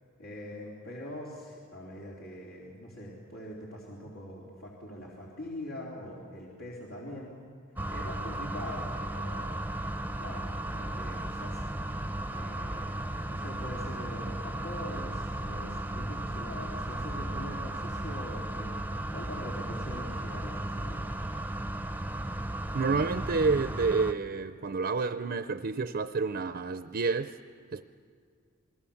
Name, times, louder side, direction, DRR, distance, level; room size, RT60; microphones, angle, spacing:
voice 1, 0.2-7.4 7.9-9.5 10.2-11.6 12.3-13.0 13.3-21.1, left 1 dB, 80° left, -5 dB, 3.6 m, -43 dB
sound 1, 7.8-24.1, right 1 dB, 10° right, 0.7 m, -35 dB
voice 2, 22.7-27.4 27.7-27.8, right 4 dB, 45° right, 10 dB, 0.6 m, -29 dB
28.0 x 20.5 x 7.2 m, 2.1 s
head